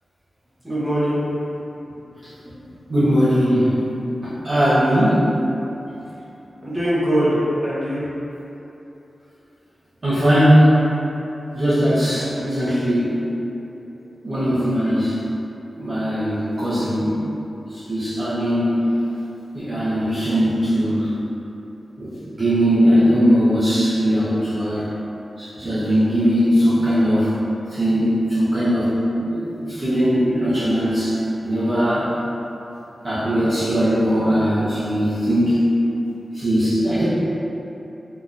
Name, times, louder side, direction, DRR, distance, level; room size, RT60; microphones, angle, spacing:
voice 1, 0.6-1.2 1.9-2.0 2.4-3.1 6.0-6.1 6.6-8.1 25.5-25.7 30.8-30.9, equal, 15° right, -12 dB, 1.0 m, -23 dB
voice 2, 2.9-3.8 4.2-5.2 10.0-10.7 11.5-13.2 14.2-15.2 15.8-17.2 17.7-18.8 19.5-21.1 22.0-24.9 25.4-27.3 27.7-28.9 29.2-32.1 33.0-35.6 36.3-37.0, equal, 35° right, -13 dB, 0.8 m, -19 dB
3.8 x 2.8 x 2.5 m, 3.0 s
wide cardioid pair, 145°, 0 cm